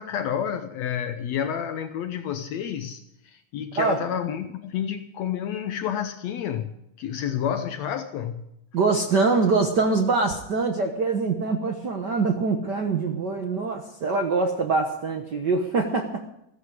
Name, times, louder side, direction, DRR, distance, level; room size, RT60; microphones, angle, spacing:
voice 1, 0.0-8.4, left 9 dB, 70° left, 1.7 m, -30 dB
voice 2, 8.7-16.3, right 4 dB, 80° right, 0.9 m, -24 dB
15.0 x 14.5 x 4.9 m
omnidirectional pair, 3.7 m